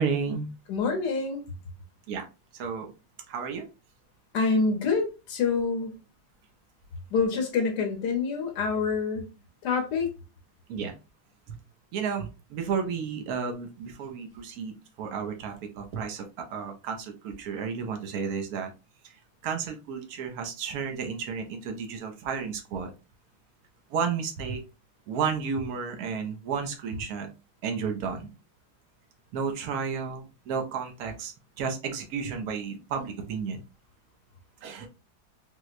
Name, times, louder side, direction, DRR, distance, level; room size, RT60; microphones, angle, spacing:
voice 1, 0.0-0.5 2.1-2.2 2.5-2.9 3.3-3.7 10.7-10.9 11.5-11.6 11.9-18.7 19.0-19.1 19.4-22.9 23.9-24.6 25.1-27.3 27.6-28.3 29.3-33.6 34.6-34.9, right 6 dB, 80° right, 0.8 m, -32 dB
voice 2, 0.7-1.4 4.3-5.9 7.1-9.3 9.6-10.1, left 4 dB, 65° left, 1.2 m, -26 dB
4.4 x 2.1 x 2.4 m
omnidirectional pair, 2.3 m